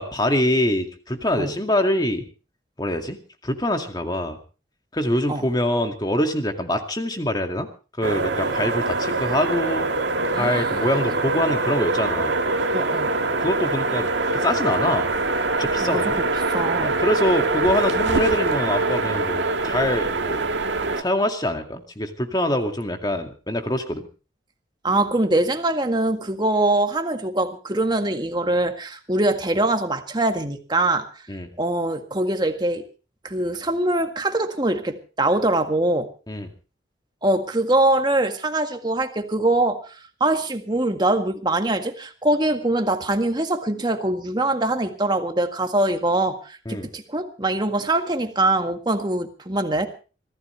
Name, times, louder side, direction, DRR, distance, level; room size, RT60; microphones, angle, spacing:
voice 1, 0.0-2.2 2.8-4.4 4.9-7.7 8.0-9.9 10.3-12.4 13.4-15.1 15.6-16.2 16.8-20.4 21.0-24.1 31.3-31.5 36.3-36.5 46.7-46.9, left 1 dB, 25° left, 5 dB, 2.2 m, -24 dB
sound 1, 8.0-21.0, right 3 dB, 85° right, 1.9 m, -24 dB
voice 2, 10.3-10.8 12.7-13.1 15.8-16.2 16.5-16.9 24.8-31.1 31.6-32.8 33.2-36.1 37.2-39.8 40.2-49.9, right 2 dB, 25° right, 6 dB, 1.8 m, -23 dB
25.0 x 16.0 x 3.3 m, 0.35 s
head